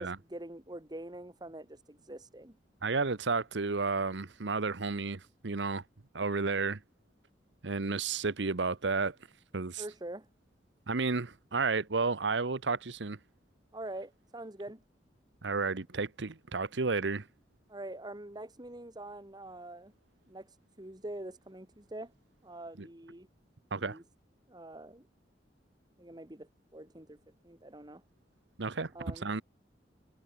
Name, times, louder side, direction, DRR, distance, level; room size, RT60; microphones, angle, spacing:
voice 1, 0.0-2.6 9.8-10.3 13.7-14.8 17.7-19.9 20.3-20.5 20.8-22.1 22.4-23.3 23.8-24.0 24.5-25.1 26.0-27.2 27.4-28.0 28.9-29.3, right 1 dB, 25° right, 2.1 m, -44 dB
voice 2, 2.8-5.8 6.1-6.8 7.6-9.2 9.5-9.8 10.9-13.2 15.4-17.3 22.8-22.9 23.7-24.0 28.6-29.4, right 4 dB, 75° right, 1.0 m, -32 dB
head